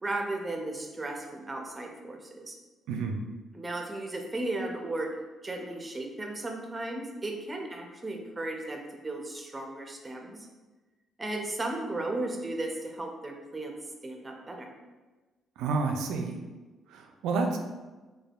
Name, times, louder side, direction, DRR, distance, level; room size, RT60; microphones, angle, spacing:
voice 1, 0.0-2.6 3.5-5.1 5.4-10.5 11.2-13.7 14.0-14.7, right 2 dB, 20° right, 2 dB, 0.4 m, -35 dB
voice 2, 2.9-3.2 15.6-16.4 16.9-17.6, right 4 dB, 90° right, 3 dB, 0.3 m, -29 dB
3.3 x 2.2 x 2.3 m, 1.2 s
cardioid pair, 90°, 0 cm